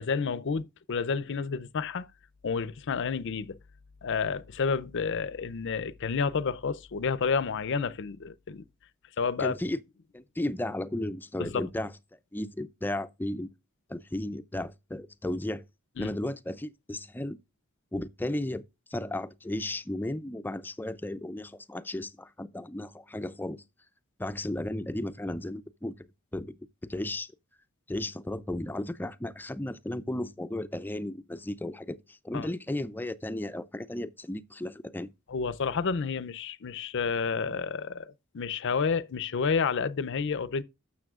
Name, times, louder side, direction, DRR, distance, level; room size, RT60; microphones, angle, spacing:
voice 1, 0.0-2.1 2.4-3.6 4.0-8.6 9.2-9.6 11.4-11.7 16.0-16.1 32.3-32.5 35.3-40.6, left 5 dB, 55° left, 0.5 m, -30 dB
voice 2, 9.4-9.8 10.1-11.9 12.3-13.5 13.9-15.6 16.0-17.4 17.9-18.6 18.9-23.6 24.2-27.3 27.9-35.1, left 1 dB, 10° left, 0.4 m, -34 dB
12.0 x 7.3 x 2.4 m
head